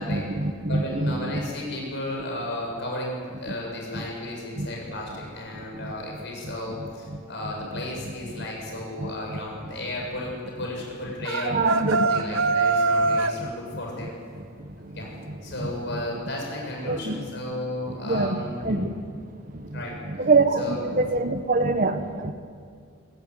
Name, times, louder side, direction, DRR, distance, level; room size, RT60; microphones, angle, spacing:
voice 1, 0.0-1.3 4.6-4.7 9.0-9.1 11.4-12.1 15.6-15.7 16.8-17.2 18.0-18.4 18.6-18.9 20.2-22.3, right 3 dB, 40° right, 8 dB, 1.1 m, -24 dB
voice 2, 0.7-11.6 11.9-14.1 14.7-15.1 15.4-18.8 19.7-19.9 20.6-20.8, left 1 dB, 55° left, -1 dB, 7.1 m, -34 dB
sound 1, 11.2-13.4, right 3 dB, 60° right, 0.9 m, -23 dB
23.0 x 14.0 x 9.7 m, 2.2 s
head